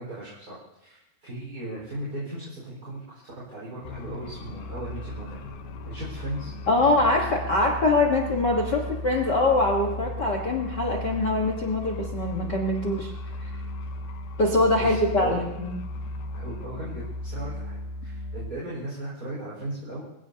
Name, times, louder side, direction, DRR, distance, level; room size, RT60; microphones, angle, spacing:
voice 1, 0.0-5.4 5.8-6.5 14.8-15.4 16.3-20.0, right 1 dB, 25° right, -7 dB, 5.2 m, -37 dB
sound 1, 3.8-18.5, left 1 dB, 75° left, 2.7 m, -36 dB
voice 2, 6.7-13.1 13.4-13.5 14.4-15.7, left 2 dB, 55° left, 1 dB, 1.2 m, -23 dB
25.5 x 17.0 x 2.8 m, 0.91 s
omnidirectional pair, 4.2 m